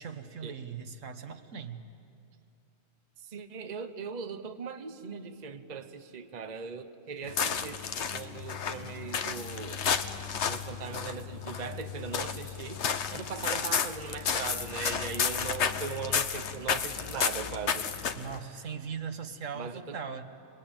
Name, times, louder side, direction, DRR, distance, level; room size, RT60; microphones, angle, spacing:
voice 1, 0.0-1.8 18.1-20.2, right 6 dB, 70° right, 8 dB, 1.6 m, -39 dB
voice 2, 3.2-9.8 10.5-17.9 19.5-20.0, right 6 dB, 35° right, 8 dB, 1.0 m, -39 dB
sound 1, 7.2-18.4, left 7 dB, 60° left, 1.2 m, -32 dB
28.0 x 22.0 x 8.9 m, 2.5 s
omnidirectional pair, 1.4 m